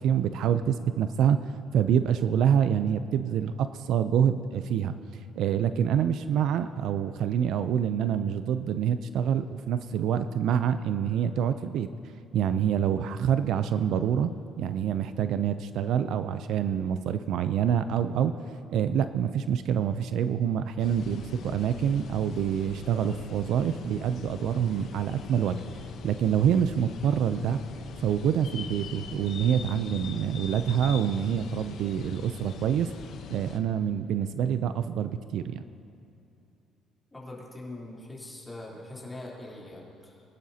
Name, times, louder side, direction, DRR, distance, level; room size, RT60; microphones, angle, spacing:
voice 1, 0.0-4.9 5.4-11.9 12.3-14.3 14.6-18.3 18.7-25.6 26.0-27.6 28.0-32.9 33.3-35.6, right 8 dB, 70° right, 11 dB, 0.4 m, -26 dB
sound 1, 20.8-33.6, left 6 dB, 65° left, 0.9 m, -42 dB
voice 2, 37.1-40.2, left 2 dB, 10° left, -5 dB, 3.4 m, -42 dB
22.0 x 11.5 x 2.8 m, 2.7 s
cardioid pair, 105°, 0 cm